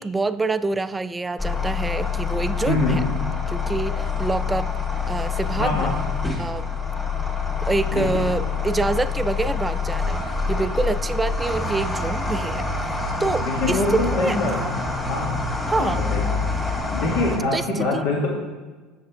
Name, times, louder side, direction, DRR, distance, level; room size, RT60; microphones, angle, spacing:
voice 1, 0.0-3.0 3.5-4.7 5.1-5.9 6.4-6.7 7.7-12.9 13.2-14.7 15.7-16.0 17.5-18.0, right 3 dB, 15° right, 14 dB, 0.3 m, -26 dB
sound 1, 1.4-17.4, left 4 dB, 15° left, 2.0 m, -26 dB
voice 2, 2.7-3.0 5.6-5.9 7.9-8.2 13.4-14.5 15.1-15.3 15.8-16.4 16.9-18.3, left 2 dB, 70° left, -2 dB, 1.5 m, -24 dB
7.2 x 6.5 x 3.4 m, 1.3 s
hypercardioid pair, 90°, 0 cm